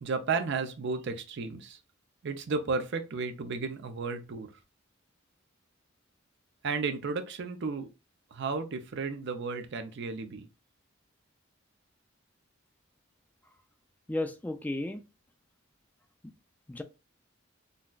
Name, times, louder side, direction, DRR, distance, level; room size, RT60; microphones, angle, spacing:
voice 1, 0.0-1.8 2.2-4.5 6.6-7.9 8.3-10.5, right 4 dB, 60° right, 0.5 m, -33 dB
voice 2, 14.1-15.0 16.7-16.8, left 1 dB, 10° left, 0.3 m, -33 dB
3.9 x 2.2 x 2.3 m
head